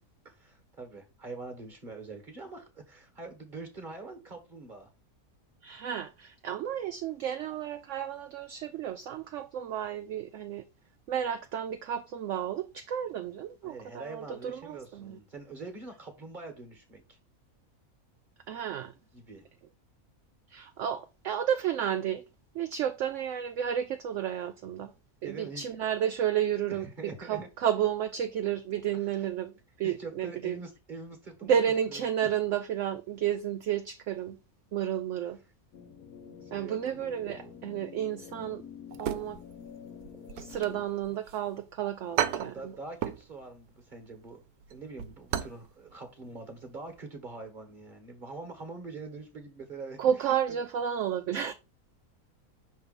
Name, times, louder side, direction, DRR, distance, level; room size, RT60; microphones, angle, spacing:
voice 1, 0.2-4.9 13.6-17.2 19.1-19.5 25.2-25.6 26.7-27.5 29.2-29.3 29.8-31.6 31.9-32.0 36.4-37.0 42.5-50.0 50.5-50.6 51.4-51.5, right 3 dB, 35° right, 1.3 m, -44 dB
voice 2, 5.6-10.6 11.1-15.2 18.5-18.9 20.5-22.2 22.5-24.9 25.2-29.5 29.8-30.6 31.4-34.4 34.7-35.4 36.5-38.6 39.0-39.4 40.3-42.7 50.0-51.5, right 9 dB, 65° right, 0.8 m, -32 dB
sound 1, 35.7-40.9, left 7 dB, 80° left, 1.2 m, -48 dB
sound 2, 38.9-39.7 40.0-41.4 41.7-41.8 42.2-43.3 43.6-43.8 44.2-45.6 45.9-46.0 46.5-46.7 47.0-47.1, right 10 dB, 85° right, 1.1 m, -34 dB
5.9 x 3.3 x 5.1 m
omnidirectional pair, 1.6 m